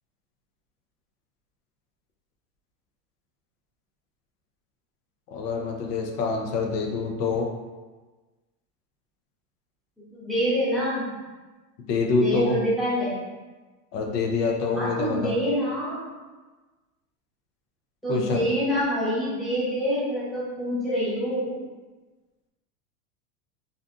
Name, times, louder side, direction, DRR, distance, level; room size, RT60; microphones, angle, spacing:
voice 1, 5.3-7.5 11.9-12.6 13.9-15.3 18.1-18.4, left 4 dB, 85° left, 0 dB, 0.7 m, -25 dB
voice 2, 10.1-11.1 12.2-13.2 14.7-16.1 18.0-21.6, equal, ahead, -9 dB, 0.7 m, -26 dB
2.7 x 2.4 x 2.3 m, 1.2 s
hypercardioid pair, 120°, 46 cm